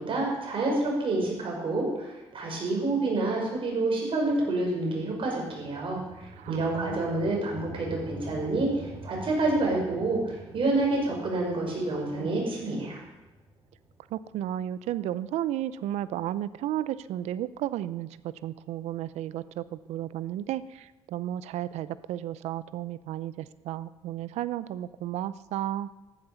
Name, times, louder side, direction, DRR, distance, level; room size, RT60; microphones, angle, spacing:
voice 1, 0.0-13.0, right 2 dB, 55° right, -1 dB, 6.6 m, -28 dB
sound 1, 4.6-14.9, right 1 dB, 35° right, 3.9 m, -46 dB
voice 2, 6.4-7.1 14.1-25.9, right 12 dB, 85° right, 16 dB, 0.6 m, -33 dB
13.5 x 11.0 x 7.1 m, 1.1 s
cardioid pair, 75°, 11 cm